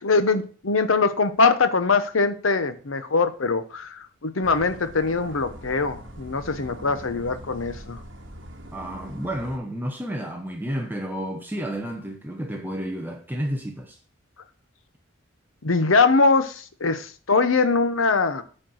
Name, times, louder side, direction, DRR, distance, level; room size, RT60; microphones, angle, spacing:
voice 1, 0.0-8.0 15.6-18.4, left 4 dB, 80° left, 0.9 m, -22 dB
sound 1, 4.4-9.6, equal, 65° right, 1.6 m, -42 dB
voice 2, 8.7-14.0, equal, 10° right, 0.9 m, -31 dB
8.9 x 4.4 x 6.4 m
head